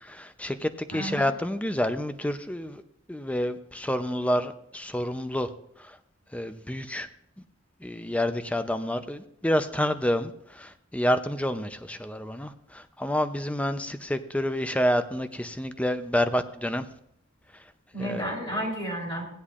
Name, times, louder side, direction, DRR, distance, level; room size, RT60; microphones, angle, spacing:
voice 1, 0.1-2.8 3.1-5.5 6.3-7.1 7.8-16.8 18.0-18.3, equal, 5° left, 10 dB, 0.5 m, -28 dB
voice 2, 0.9-1.3 17.9-19.3, equal, 30° left, -1 dB, 3.0 m, -32 dB
16.0 x 9.9 x 2.4 m, 0.71 s
head